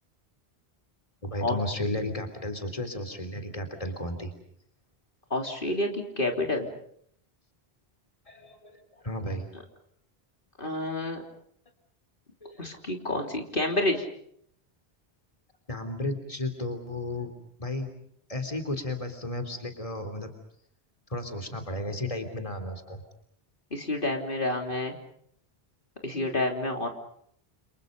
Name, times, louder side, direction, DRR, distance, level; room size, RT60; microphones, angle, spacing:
voice 1, 1.2-4.3 8.3-9.4 12.4-12.6 15.7-17.3 17.6-17.9 18.3-20.3 21.1-23.0 26.1-26.4, left 1 dB, 35° left, 6 dB, 3.5 m, -33 dB
voice 2, 5.3-6.7 10.6-11.2 12.6-14.1 23.7-25.0 26.0-26.9, left 2 dB, 55° left, 3 dB, 3.5 m, -29 dB
29.5 x 29.0 x 5.3 m, 0.66 s
omnidirectional pair, 1.0 m